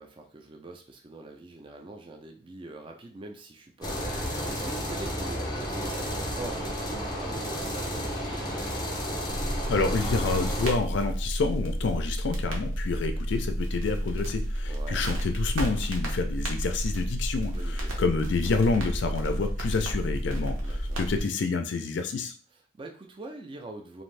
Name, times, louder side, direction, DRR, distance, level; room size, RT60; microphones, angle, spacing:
voice 1, 0.0-9.0 14.7-15.1 17.5-18.0 20.6-21.0 22.5-24.0, right 2 dB, 25° right, 4 dB, 0.3 m, -44 dB
sound 1, 3.8-10.7, equal, 20° left, 0.6 m, -32 dB
sound 2, 9.3-21.2, equal, 80° right, 0.8 m, -31 dB
voice 2, 9.7-17.5 18.0-22.3, left 4 dB, 60° left, 7 dB, 0.4 m, -28 dB
2.6 x 2.5 x 3.2 m, 0.41 s
head